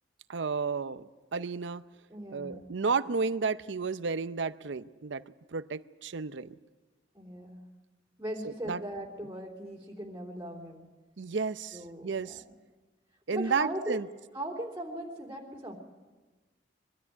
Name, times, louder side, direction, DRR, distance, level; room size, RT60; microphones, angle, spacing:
voice 1, 0.3-1.8 2.3-5.2 5.5-6.6 8.4-8.8 11.2-12.4 13.3-14.1, right 4 dB, 85° right, 13 dB, 0.7 m, -32 dB
voice 2, 2.1-2.7 7.1-7.7 8.2-10.9 11.7-12.5 13.3-14.0 14.3-15.8, right 1 dB, 15° right, -2 dB, 3.3 m, -39 dB
23.0 x 13.5 x 9.3 m, 1.3 s
head